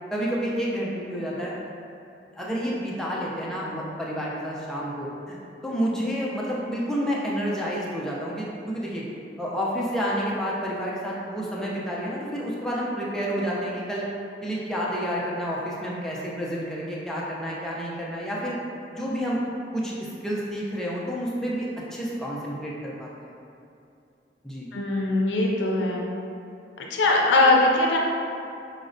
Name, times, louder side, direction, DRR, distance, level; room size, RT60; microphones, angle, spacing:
voice 1, 0.1-1.6 2.4-5.4 5.6-9.0 9.4-14.1 14.4-18.6 18.9-19.4 19.7-23.3 24.4-24.7, equal, 5° left, -6 dB, 0.4 m, -29 dB
voice 2, 24.7-26.1 26.8-28.0, left 2 dB, 80° left, -1 dB, 0.5 m, -21 dB
5.0 x 2.1 x 2.5 m, 2.6 s
head